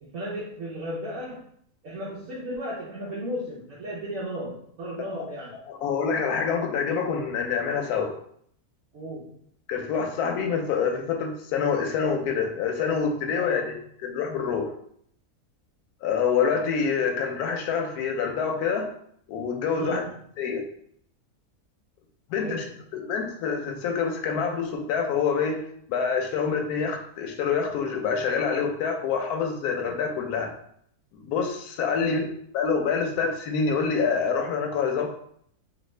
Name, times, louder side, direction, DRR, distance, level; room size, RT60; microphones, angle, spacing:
voice 1, 0.0-1.4 1.8-5.6 8.9-9.3 13.3-13.8 19.7-20.1 22.4-22.7 32.0-32.2, equal, 65° right, -6 dB, 1.1 m, -35 dB
voice 2, 5.7-8.1 9.7-13.7 14.0-14.7 16.0-18.9 19.3-20.0 20.4-20.6 22.3-22.6 22.9-25.6 25.9-30.5 31.2-32.2 32.5-35.1, left 6 dB, 85° left, 2 dB, 1.1 m, -26 dB
3.3 x 2.4 x 3.1 m, 0.65 s
omnidirectional pair, 1.6 m